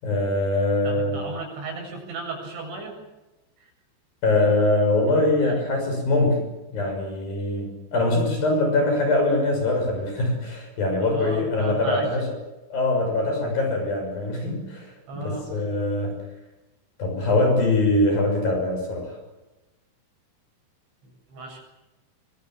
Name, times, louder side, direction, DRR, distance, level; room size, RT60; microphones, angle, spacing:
voice 1, 0.0-1.2 4.2-12.3 12.7-16.2 17.0-19.2, left 2 dB, 45° left, 3 dB, 7.9 m, -23 dB
voice 2, 0.8-3.0 3.6-3.7 11.0-12.1 15.1-15.7 21.3-21.6, right 3 dB, 60° right, 2 dB, 9.7 m, -35 dB
25.5 x 24.5 x 7.5 m, 1.0 s
omnidirectional pair, 5.8 m